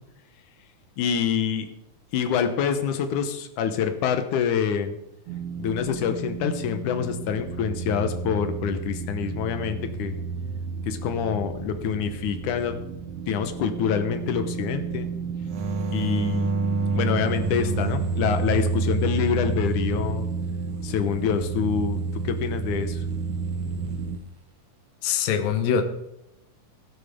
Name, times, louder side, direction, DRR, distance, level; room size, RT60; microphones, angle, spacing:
voice 1, 1.0-1.7 2.1-5.0 5.6-10.2 10.9-12.8 13.3-15.1 15.9-16.5 17.0-20.3 20.8-22.0 22.2-23.0, left 7 dB, 70° left, 8 dB, 2.4 m, -26 dB
sound 1, 5.3-24.2, right 5 dB, 75° right, 1.4 m, -31 dB
sound 2, 15.5-20.1 23.4-23.9, right 3 dB, 60° right, 2.3 m, -29 dB
voice 2, 25.0-25.8, left 7 dB, 85° left, 8 dB, 2.7 m, -23 dB
16.5 x 10.5 x 3.7 m, 0.85 s
omnidirectional pair, 3.9 m